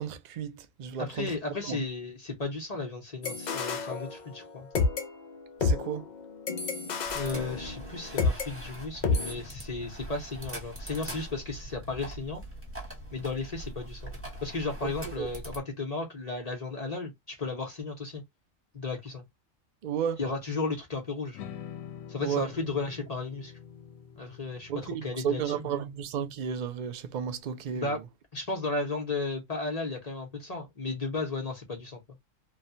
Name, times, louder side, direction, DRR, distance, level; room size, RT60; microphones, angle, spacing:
voice 1, 0.0-1.4 1.6-1.9 5.6-6.1 14.8-14.9 15.2-15.3 19.8-20.2 22.2-22.5 24.7-28.0, right 8 dB, 75° right, 0.4 m, -33 dB
voice 2, 1.0-4.7 7.1-12.4 13.1-14.1 14.4-18.2 18.7-19.2 20.2-21.4 22.1-23.5 24.2-25.5 27.7-28.0 28.3-32.0, left 3 dB, 35° left, 0.8 m, -34 dB
sound 1, 3.2-4.5 4.7-8.5 9.0-9.3, left 4 dB, 55° left, 0.5 m, -29 dB
sound 2, 7.0-15.6, right 1 dB, 10° right, 1.0 m, -42 dB
sound 3, 21.3-27.6, left 8 dB, 85° left, 1.0 m, -47 dB
3.1 x 2.2 x 2.5 m
omnidirectional pair, 1.4 m